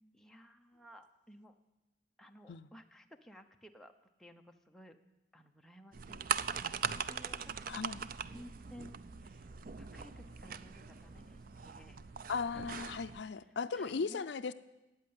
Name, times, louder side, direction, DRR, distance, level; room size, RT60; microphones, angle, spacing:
voice 1, 0.1-1.6 2.2-3.9 4.2-5.0 5.3-7.8 8.3-9.5 9.8-12.0 12.5-12.7 13.4-14.2, equal, 5° left, 3 dB, 0.9 m, -56 dB
sound 1, 5.9-13.2, right 6 dB, 50° right, 0.5 m, -41 dB
sound 2, 6.2-12.3, left 1 dB, 30° left, 3.4 m, -66 dB
voice 2, 7.7-8.0 12.3-14.5, left 5 dB, 65° left, 12 dB, 0.5 m, -37 dB
14.0 x 9.1 x 9.6 m, 1.0 s
head